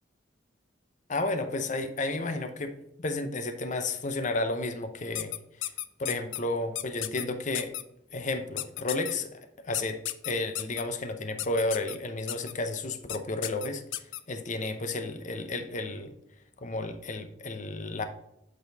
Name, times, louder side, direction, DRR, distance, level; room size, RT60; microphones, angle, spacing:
voice 1, 1.1-2.7 3.0-5.3 5.6-5.7 6.0-7.7 8.1-9.4 9.7-10.0 10.2-13.8 14.3-16.1 16.6-18.0, left 2 dB, 40° left, 8 dB, 0.7 m, -32 dB
sound 1, 5.2-6.4 6.8-7.2 7.5-7.8 8.6-9.1 9.7-10.8 11.4-12.0 12.3-12.5 13.1-13.2 13.4-14.2, left 14 dB, 80° left, 0.4 m, -33 dB
8.1 x 4.1 x 4.0 m, 0.83 s
head